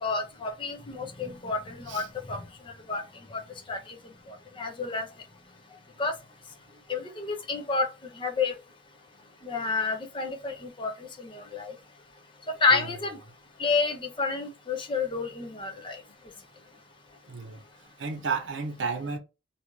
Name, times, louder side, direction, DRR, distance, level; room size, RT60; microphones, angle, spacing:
voice 1, 0.0-2.4 2.9-3.0 3.3-3.4 3.7-3.8 4.6-5.1 6.0-6.1 6.9-7.9 8.2-8.5 9.4-10.9 11.2-11.7 12.6-13.1 13.6-16.0, left 4 dB, 25° left, 0.6 m, -29 dB
voice 2, 17.3-17.6 18.0-19.2, right 5 dB, 80° right, 0.6 m, -32 dB
2.7 x 2.4 x 2.9 m
head